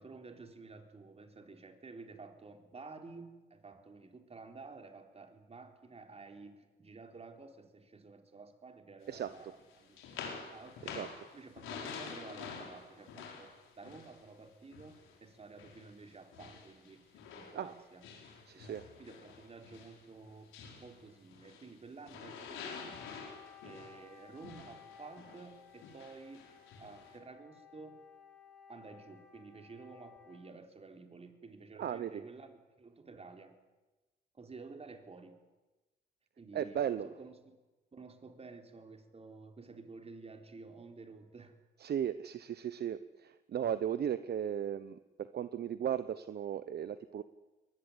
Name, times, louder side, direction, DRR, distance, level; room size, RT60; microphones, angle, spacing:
voice 1, 0.0-11.1 11.3-17.0 17.3-18.0 18.5-23.0 23.6-26.4 26.8-28.0 28.7-33.6 34.3-35.4 36.4-36.8 37.0-37.6 37.9-41.6, right 4 dB, 30° right, 5 dB, 4.0 m, -52 dB
sound 1, 9.1-15.2 15.6-21.8 22.1-27.2, left 5 dB, 90° left, 5.2 m, -48 dB
voice 2, 18.5-18.8 31.8-32.1 36.5-37.1 41.8-47.2, right 9 dB, 55° right, 13 dB, 0.9 m, -36 dB
Wind instrument woodwind instrument, 22.6-30.6, left 7 dB, 5° left, 5.4 m, -58 dB
22.5 x 20.0 x 9.8 m, 1.1 s
cardioid pair, 90°, 20 cm